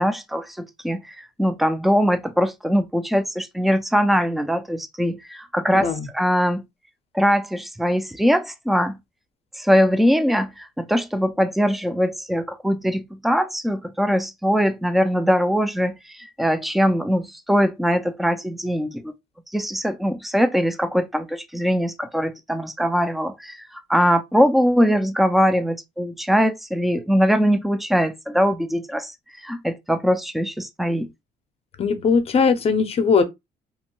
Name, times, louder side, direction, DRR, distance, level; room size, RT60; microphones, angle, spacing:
voice 1, 0.0-6.6 7.1-9.0 9.6-19.1 19.5-29.1 29.4-31.1, equal, ahead, 0.3 m, -21 dB
voice 2, 31.8-33.2, left 5 dB, 35° left, 0.6 m, -19 dB
2.9 x 2.1 x 3.0 m
cardioid pair, 110°, 17 cm